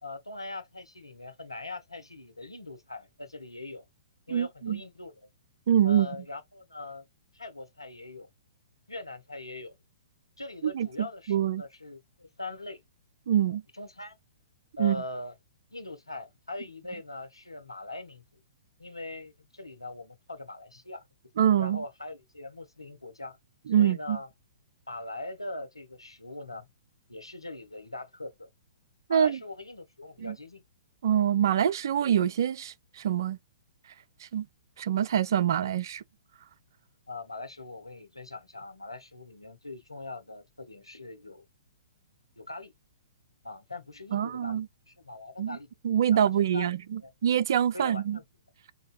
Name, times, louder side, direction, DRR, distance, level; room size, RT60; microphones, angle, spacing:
voice 1, 0.0-3.9 4.3-5.3 5.8-7.1 7.3-8.3 8.9-9.7 10.4-12.8 13.7-14.2 14.8-15.3 15.7-18.2 18.8-21.0 21.6-23.4 23.8-24.3 24.9-26.6 27.1-28.5 29.1-30.6 37.1-41.5 42.4-42.7 43.4-45.7 46.1-46.7 47.0-47.1 47.7-48.2, left 2 dB, 85° left, 1.1 m, -41 dB
voice 2, 4.3-4.8 5.7-6.1 10.6-10.9 11.3-11.6 13.3-13.6 14.8-15.0 21.4-21.8 23.7-24.2 29.1-29.4 30.2-30.3 31.0-33.4 34.3-34.5 34.8-36.0 44.1-44.7 45.4-45.6 45.8-48.2, right 9 dB, 55° right, 0.4 m, -25 dB
4.8 x 2.7 x 2.3 m
figure-of-eight pair, 115°, 3 cm